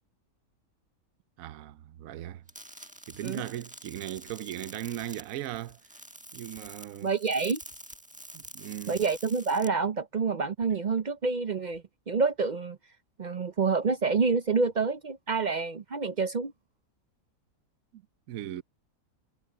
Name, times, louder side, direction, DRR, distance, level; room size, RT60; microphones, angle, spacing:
voice 1, 1.4-2.4 3.1-5.8 6.3-7.1 8.3-9.0 17.9-18.0 18.3-18.6, right 12 dB, 75° right, 1.1 m, -38 dB
sound 1, 2.5-9.7, right 1 dB, 5° right, 1.2 m, -47 dB
sound 2, 3.1-3.5 4.1-4.6 5.0-6.0 6.5-6.9 7.6-8.0 8.4-8.7 9.0-9.4 10.6-11.0 11.7-12.0, left 1 dB, 35° left, 7.0 m, -63 dB
voice 2, 7.0-7.6 8.9-12.8 13.2-16.5, right 4 dB, 50° right, 0.5 m, -28 dB
omnidirectional pair, 1.5 m